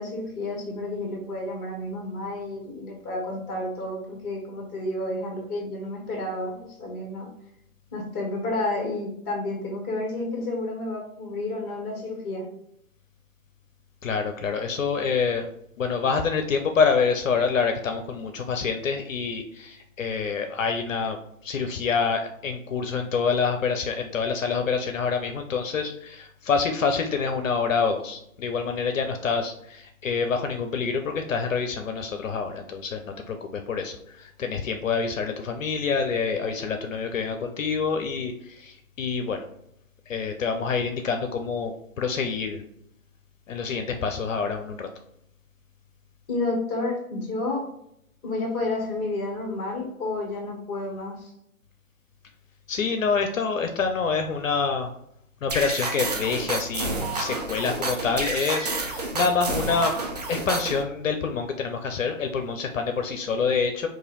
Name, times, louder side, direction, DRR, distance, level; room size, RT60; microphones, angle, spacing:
voice 1, 0.0-7.3 7.9-12.5 46.3-47.7 48.2-51.3, left 2 dB, 20° left, 0 dB, 1.0 m, -30 dB
voice 2, 14.0-15.5 15.8-39.5 40.1-42.6 43.5-44.9 52.7-54.9 55.4-60.0 60.3-63.9, left 5 dB, 65° left, 5 dB, 0.6 m, -27 dB
sound 1, 55.5-60.8, right 2 dB, 30° right, 0.4 m, -29 dB
3.1 x 2.5 x 3.8 m, 0.75 s
hypercardioid pair, 140°, 42 cm